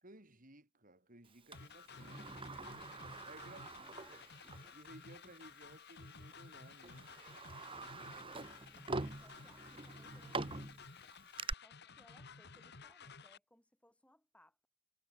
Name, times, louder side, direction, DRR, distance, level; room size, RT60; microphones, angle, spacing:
voice 1, 0.0-4.2 4.7-7.1, right 1 dB, 40° right, 4.9 m, -59 dB
sound 1, 1.5-13.4, left 5 dB, 55° left, 1.9 m, -55 dB
Sliding door, 1.5-4.7 5.1-5.2 6.1-6.3 6.8-11.5, right 3 dB, 25° right, 1.6 m, -45 dB
voice 2, 3.5-4.2 8.1-11.2 11.5-14.7, left 1 dB, 5° left, 5.3 m, -68 dB
head